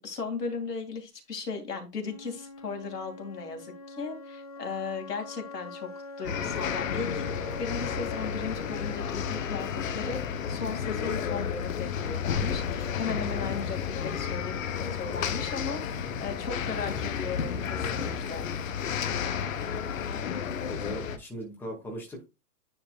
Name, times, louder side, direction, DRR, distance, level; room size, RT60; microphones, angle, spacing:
voice 1, 0.0-5.9 6.2-7.2 7.6-18.5, left 4 dB, 75° left, 2.5 m, -36 dB
Wind instrument woodwind instrument, 2.0-10.0, left 2 dB, 25° left, 0.4 m, -44 dB
sound 1, 6.2-21.2, left 7 dB, 55° left, 1.0 m, -32 dB
voice 2, 20.2-22.3, equal, 5° left, 2.0 m, -39 dB
10.0 x 4.7 x 2.4 m
figure-of-eight pair, 120°, 48 cm